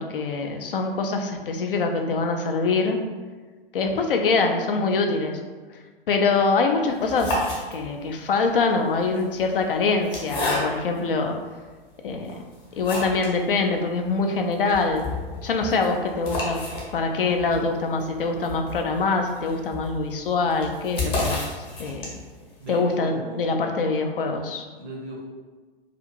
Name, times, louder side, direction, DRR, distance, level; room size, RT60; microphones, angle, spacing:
voice 1, 0.0-3.0 3.7-5.4 6.1-7.4 7.7-11.4 12.0-12.4 12.8-15.1 15.4-16.6 16.9-22.1 22.7-24.6, left 4 dB, 65° left, 4 dB, 0.4 m, -24 dB
sound 1, 6.9-8.1 9.0-11.1 11.7-11.8 12.2-13.4 13.7-13.8 14.1-14.2 14.5-22.4, left 2 dB, 30° left, 0.9 m, -31 dB
voice 2, 22.6-23.8 24.7-25.3, right 1 dB, 25° right, -2 dB, 0.5 m, -37 dB
2.4 x 2.4 x 2.9 m, 1.4 s
figure-of-eight pair, 110°, 30 cm